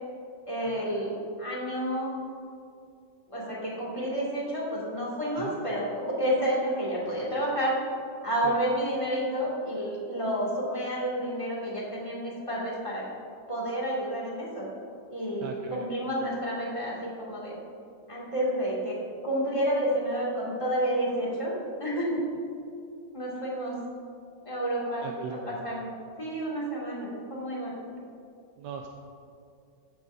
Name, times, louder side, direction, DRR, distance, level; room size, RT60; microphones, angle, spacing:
voice 1, 0.5-2.2 3.3-7.8 8.2-13.0 13.5-14.7 15.1-17.6 18.1-19.0 19.2-21.5 21.8-22.2 23.1-23.7 24.4-25.9 26.2-27.7, equal, 15° left, -6 dB, 2.3 m, -30 dB
voice 2, 15.4-15.9 25.0-25.5 28.6-28.9, right 6 dB, 75° right, 3 dB, 1.2 m, -39 dB
14.5 x 9.7 x 2.7 m, 2.4 s
omnidirectional pair, 2.0 m